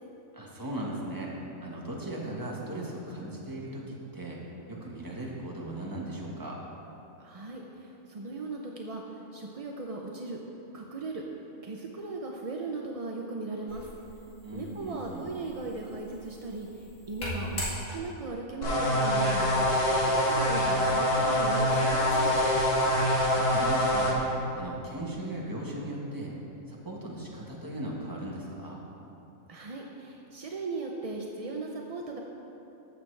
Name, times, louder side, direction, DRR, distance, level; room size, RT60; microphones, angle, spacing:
voice 1, 0.3-1.4 1.6-4.4 4.7-6.6 14.4-15.3 23.0-24.2 24.5-26.3 26.7-28.8, right 1 dB, 15° right, -3 dB, 1.2 m, -38 dB
voice 2, 7.2-9.0 9.3-10.4 10.7-11.2 11.6-13.9 14.5-16.7 17.1-19.7 20.0-22.3 29.5-32.2, right 3 dB, 55° right, 0 dB, 0.4 m, -37 dB
sound 1, 13.7-18.4, equal, 75° left, 2.4 m, -40 dB
sound 2, 18.6-24.1, left 1 dB, 50° left, 1.3 m, -25 dB
13.5 x 6.7 x 3.2 m, 3.0 s
omnidirectional pair, 1.4 m